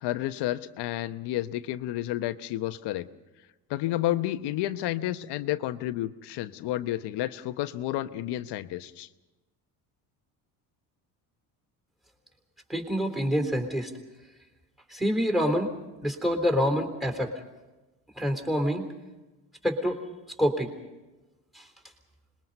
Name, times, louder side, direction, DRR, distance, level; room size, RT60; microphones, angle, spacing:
voice 1, 0.0-3.1 3.7-9.1, left 14 dB, 70° left, 11 dB, 1.1 m, -31 dB
voice 2, 12.7-13.9 14.9-15.7 16.0-17.3 18.2-18.9 19.6-20.0 20.4-20.7 21.5-21.7, equal, ahead, 4 dB, 3.6 m, -26 dB
26.5 x 21.5 x 5.5 m, 1.1 s
cardioid pair, 115°, 42 cm